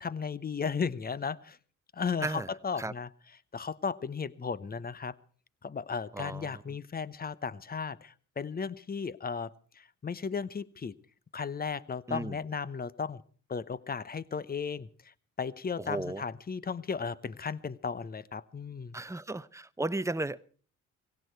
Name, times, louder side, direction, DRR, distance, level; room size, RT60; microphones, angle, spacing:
voice 1, 0.0-1.6 1.9-3.1 3.5-5.2 5.6-10.9 11.3-13.2 13.5-19.0, left 5 dB, 25° left, 0.8 m, -35 dB
voice 2, 6.1-6.5 12.1-12.4 15.8-16.2 18.9-20.4, right 2 dB, 10° right, 0.7 m, -34 dB
17.5 x 17.0 x 4.6 m
supercardioid pair, 60°, 36 cm